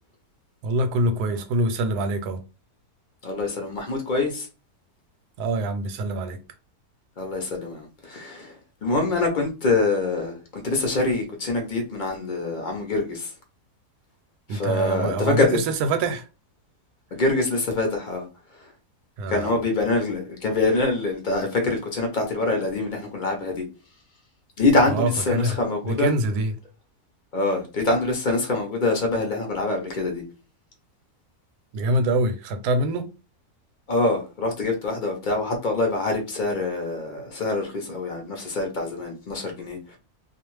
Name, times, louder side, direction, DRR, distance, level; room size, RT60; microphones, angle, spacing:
voice 1, 0.6-2.4 5.4-6.4 14.5-16.2 19.2-19.6 24.9-25.6 25.8-26.5 31.7-33.1, right 2 dB, 90° right, 1.1 m, -25 dB
voice 2, 3.2-4.5 7.2-8.5 8.8-13.3 14.5-15.6 17.1-18.3 19.3-23.6 24.6-26.1 27.3-30.2 33.9-40.0, left 2 dB, 50° left, 0.6 m, -25 dB
2.4 x 2.3 x 3.0 m
omnidirectional pair, 1.6 m